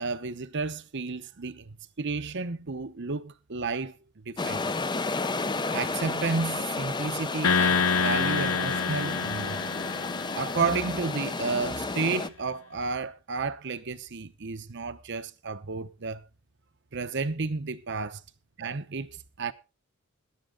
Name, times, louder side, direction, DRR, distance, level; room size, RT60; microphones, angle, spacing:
voice 1, 0.0-3.9 4.2-4.7 5.7-9.6 10.3-16.2 16.9-18.2 18.6-19.5, right 4 dB, 55° right, 0.8 m, -32 dB
sound 1, 4.4-12.3, left 3 dB, 20° left, 0.6 m, -32 dB
sound 2, 7.4-10.9, left 5 dB, 65° left, 0.6 m, -27 dB
21.0 x 7.5 x 3.7 m
head